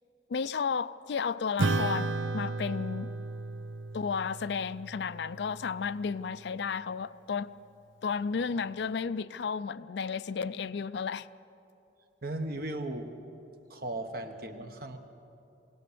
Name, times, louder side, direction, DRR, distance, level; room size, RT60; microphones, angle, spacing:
voice 1, 0.3-3.1 3.9-7.5 8.0-11.3, left 5 dB, 65° left, 0.4 m, -33 dB
Acoustic guitar / Strum, 1.6-6.4, right 3 dB, 90° right, 0.7 m, -34 dB
voice 2, 12.2-13.2 13.7-15.0, right 1 dB, 50° right, 1.3 m, -36 dB
22.0 x 17.5 x 6.9 m
head